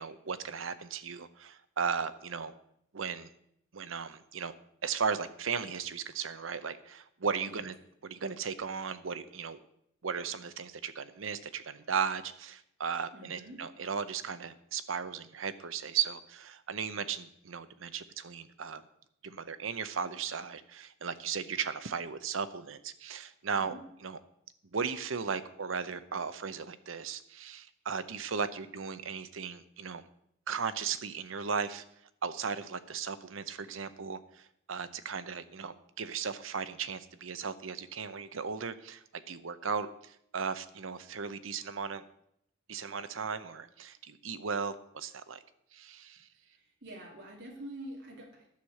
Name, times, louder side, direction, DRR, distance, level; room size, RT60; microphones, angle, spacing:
voice 1, 0.0-2.5 2.9-3.3 3.7-4.5 4.8-7.7 8.0-9.6 10.0-18.8 19.2-23.7 24.0-24.2 24.7-30.0 30.5-31.8 32.2-42.0 42.7-45.4 45.7-46.3, right 6 dB, 85° right, 13 dB, 0.8 m, -36 dB
voice 2, 13.1-13.6 23.5-23.8 46.4-48.5, right 1 dB, 60° right, -2 dB, 2.5 m, -46 dB
11.5 x 6.5 x 7.7 m, 0.74 s
head